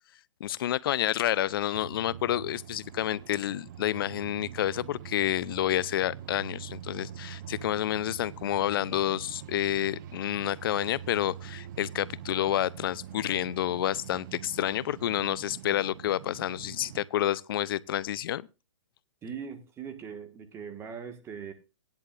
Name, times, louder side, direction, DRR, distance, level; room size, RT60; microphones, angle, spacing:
voice 1, 0.4-18.5, left 12 dB, 50° left, 0.6 m, -29 dB
sound 1, 1.7-17.1, right 11 dB, 40° right, 0.5 m, -44 dB
voice 2, 19.2-21.5, right 7 dB, 15° right, 1.6 m, -40 dB
16.5 x 10.5 x 2.5 m
hypercardioid pair, 145°, 15 cm